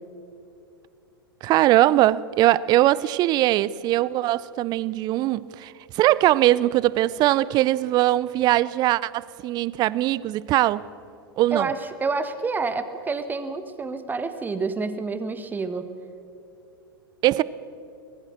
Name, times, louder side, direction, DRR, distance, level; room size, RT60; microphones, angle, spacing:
voice 1, 1.4-10.9 11.4-11.7 17.2-17.4, right 15 dB, 35° right, 20 dB, 0.5 m, -21 dB
voice 2, 11.5-15.9, right 4 dB, 15° right, 10 dB, 1.5 m, -28 dB
23.5 x 19.5 x 6.5 m, 2.6 s
figure-of-eight pair, 95°, 12 cm